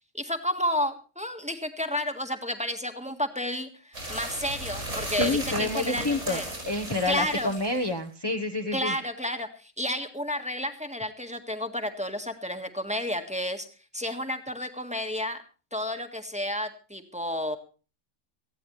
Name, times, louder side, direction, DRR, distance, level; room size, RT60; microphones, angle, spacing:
voice 1, 0.1-6.4 7.0-7.5 8.7-13.7 13.9-15.4 15.7-17.6, left 1 dB, 5° right, 6 dB, 1.7 m, -31 dB
sound 1, 3.9-8.0, right 1 dB, 75° right, 6.3 m, -35 dB
voice 2, 5.2-8.9, left 2 dB, 20° left, 3 dB, 1.2 m, -28 dB
19.0 x 15.0 x 3.2 m, 0.35 s
omnidirectional pair, 1.3 m